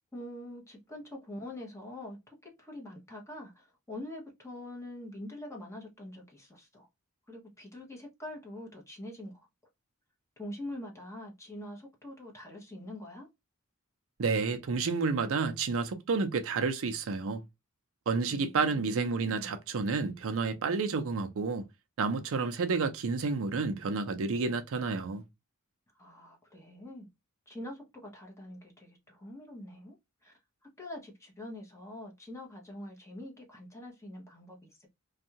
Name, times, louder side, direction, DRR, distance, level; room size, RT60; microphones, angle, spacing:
voice 1, 0.1-6.9 7.3-9.4 10.4-13.3 18.3-19.5 25.9-27.1 27.5-30.0 30.2-30.3 30.8-34.9, left 1 dB, 15° left, 1.0 m, -44 dB
voice 2, 14.2-17.4 18.1-21.6 22.0-25.2, right 4 dB, 65° right, 0.5 m, -30 dB
2.6 x 2.3 x 2.7 m
head